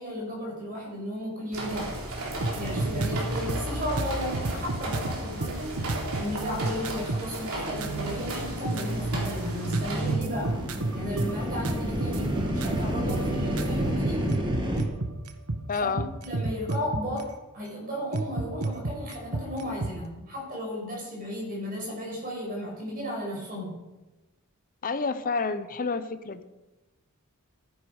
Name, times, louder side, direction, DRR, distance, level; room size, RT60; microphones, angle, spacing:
voice 1, 0.0-2.0 2.6-5.8 6.1-10.6 10.9-14.4 15.8-23.8, equal, 40° right, -2 dB, 5.6 m, -34 dB
sound 1, 1.5-10.2, right 2 dB, 70° right, 3.9 m, -33 dB
sound 2, 2.4-7.4 7.7-8.4 8.6-17.2 18.1-19.9, right 2 dB, 85° right, 1.2 m, -31 dB
sound 3, 9.7-14.8, equal, 20° right, 2.2 m, -30 dB
voice 2, 15.7-16.1 24.8-26.4, left 4 dB, 40° left, 12 dB, 0.7 m, -29 dB
14.0 x 10.5 x 4.9 m, 1.1 s
head